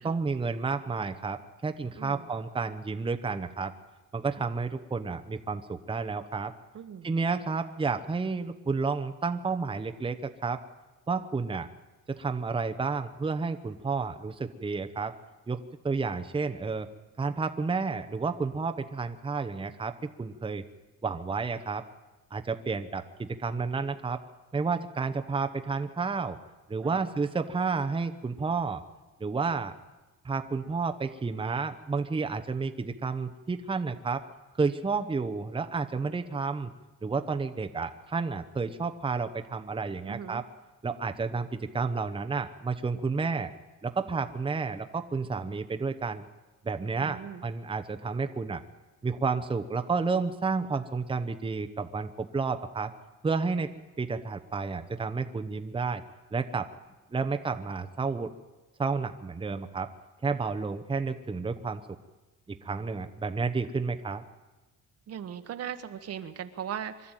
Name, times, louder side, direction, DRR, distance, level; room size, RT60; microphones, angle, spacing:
voice 1, 0.0-3.7 4.1-6.5 7.0-10.6 11.1-11.7 12.1-15.1 15.5-16.9 17.2-20.6 21.0-21.8 22.3-24.2 24.5-26.4 26.7-28.8 29.2-29.7 30.2-34.2 34.6-36.7 37.0-40.4 40.8-43.5 43.8-46.3 46.6-48.6 49.0-52.9 53.2-53.7 54.0-56.0 56.3-56.7 57.1-58.3 58.8-59.9 60.2-61.8 62.5-64.2, right 4 dB, 15° right, 7 dB, 0.9 m, -31 dB
voice 2, 2.0-2.3 6.7-7.1 26.8-27.1 40.1-40.4 47.0-47.4 65.1-67.1, right 9 dB, 55° right, 9 dB, 1.4 m, -39 dB
24.0 x 12.5 x 9.1 m, 1.1 s
cardioid pair, 135°, 30 cm